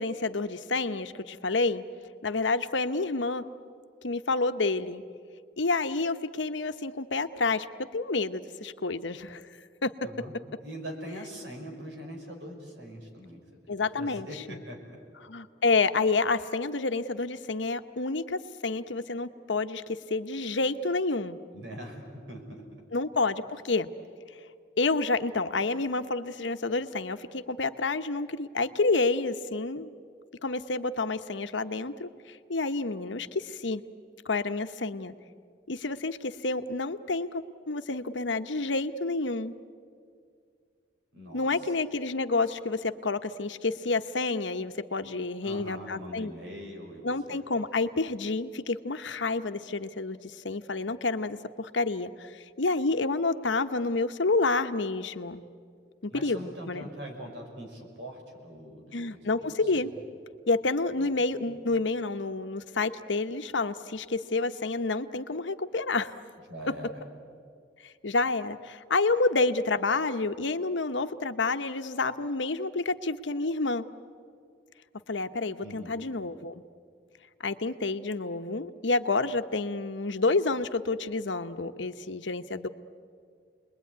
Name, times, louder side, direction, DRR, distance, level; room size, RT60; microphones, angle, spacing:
voice 1, 0.0-1.8 2.2-3.4 4.0-5.0 5.6-7.7 7.9-9.4 9.8-9.9 13.7-14.6 15.2-21.4 22.9-23.9 24.8-29.9 30.4-33.8 34.2-35.1 35.7-39.5 41.3-46.3 47.0-55.4 56.0-56.9 58.9-59.9 60.5-66.1 66.7-66.8 68.0-73.8 75.1-76.6 77.4-82.7, left 3 dB, 85° left, 10 dB, 1.0 m, -29 dB
voice 2, 10.0-10.3 10.6-15.0 21.5-22.8 41.1-41.7 45.4-47.4 56.1-59.9 61.0-61.1 61.5-61.6 66.5-67.0 75.6-75.9, equal, 80° right, 2 dB, 5.7 m, -43 dB
29.5 x 21.5 x 9.5 m, 2.2 s
head